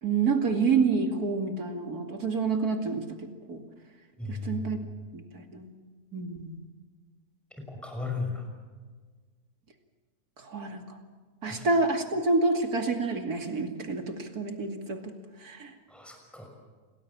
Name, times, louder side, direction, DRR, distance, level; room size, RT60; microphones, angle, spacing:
voice 1, 0.0-3.6 4.3-4.8 5.1-5.7 6.1-6.6 10.4-11.0 11.4-15.1 15.4-15.7, right 4 dB, 70° right, 4 dB, 2.9 m, -28 dB
voice 2, 4.2-4.7 7.6-8.4 11.5-11.6 15.9-16.5, left 3 dB, ahead, 1 dB, 6.1 m, -35 dB
28.5 x 19.0 x 7.4 m, 1.5 s
omnidirectional pair, 1.7 m